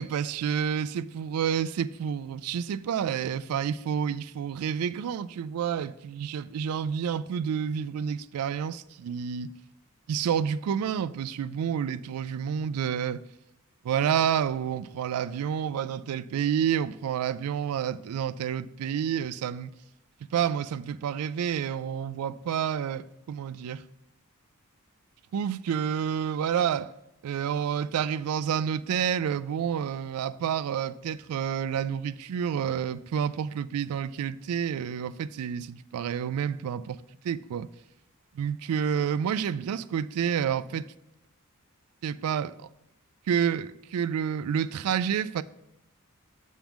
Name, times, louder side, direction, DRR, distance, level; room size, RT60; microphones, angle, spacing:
voice 1, 0.0-9.6 10.1-13.2 13.8-19.7 20.3-23.8 25.3-26.9 27.2-37.7 38.3-40.9 42.0-42.7 43.3-45.4, right 8 dB, 90° right, 0.3 m, -29 dB
7.3 x 3.6 x 5.8 m
head